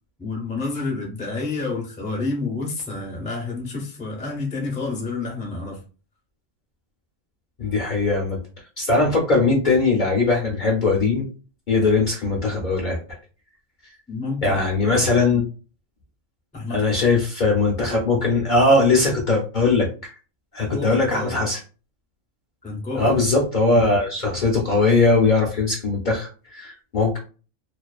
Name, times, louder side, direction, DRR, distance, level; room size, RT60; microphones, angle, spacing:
voice 1, 0.2-5.8 14.1-15.2 16.5-16.9 20.7-21.5 22.6-23.2, left 3 dB, 10° left, 0 dB, 0.4 m, -29 dB
voice 2, 7.6-8.4 8.8-11.3 11.7-13.0 14.4-15.4 16.7-19.9 20.5-21.6 23.0-27.2, left 3 dB, 50° left, -1 dB, 0.6 m, -20 dB
2.4 x 2.3 x 2.3 m, 0.35 s
omnidirectional pair, 1.3 m